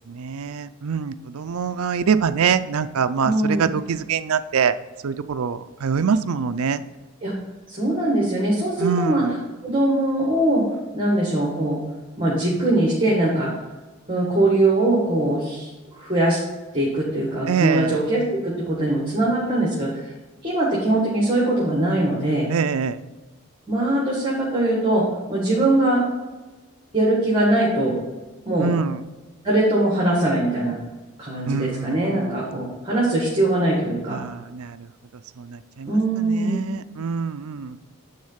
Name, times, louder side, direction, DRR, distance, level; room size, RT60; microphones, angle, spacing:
voice 1, 0.1-4.8 5.0-6.8 8.8-9.3 17.5-18.0 22.5-23.0 28.6-29.0 31.4-32.4 34.1-34.9 35.4-37.8, right 6 dB, 80° right, 12 dB, 0.5 m, -25 dB
voice 2, 3.2-3.6 7.2-7.3 7.7-9.3 9.6-10.6 10.9-11.8 12.2-13.5 14.1-16.4 16.7-20.1 20.4-22.5 23.7-26.0 26.9-28.0 28.5-28.7 29.4-30.8 31.2-34.2 35.9-36.6, right 1 dB, 20° right, -5 dB, 1.8 m, -21 dB
9.7 x 3.9 x 5.7 m, 1.2 s
head